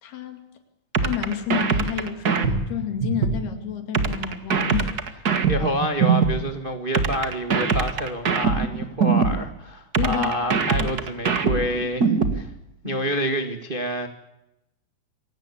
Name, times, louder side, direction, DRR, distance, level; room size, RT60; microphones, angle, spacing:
voice 1, 0.0-0.4 1.0-4.9 10.0-10.3 10.7-10.9 12.8-13.0, left 8 dB, 75° left, 7 dB, 4.4 m, -29 dB
sound 1, 0.9-3.4 3.9-6.4 6.9-9.4 9.9-12.4, right 5 dB, 50° right, 1.1 m, -22 dB
voice 2, 5.5-12.5 12.8-14.1, equal, 90° right, 6 dB, 0.4 m, -28 dB
26.5 x 17.5 x 8.5 m, 0.90 s
omnidirectional pair, 4.5 m